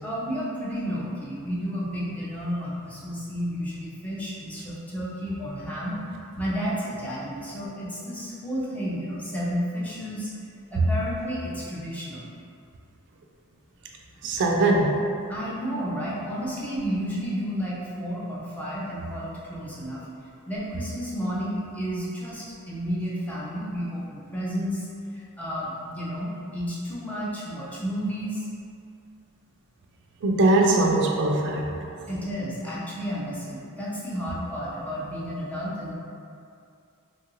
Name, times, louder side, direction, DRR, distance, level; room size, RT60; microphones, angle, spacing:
voice 1, 0.0-6.0 6.4-10.3 10.7-12.3 15.3-20.0 20.5-28.5 32.1-35.9, equal, 5° left, -7 dB, 0.4 m, -31 dB
voice 2, 14.2-15.0 30.2-31.7, right 2 dB, 55° right, 1 dB, 0.3 m, -21 dB
2.9 x 2.5 x 2.9 m, 2.5 s
head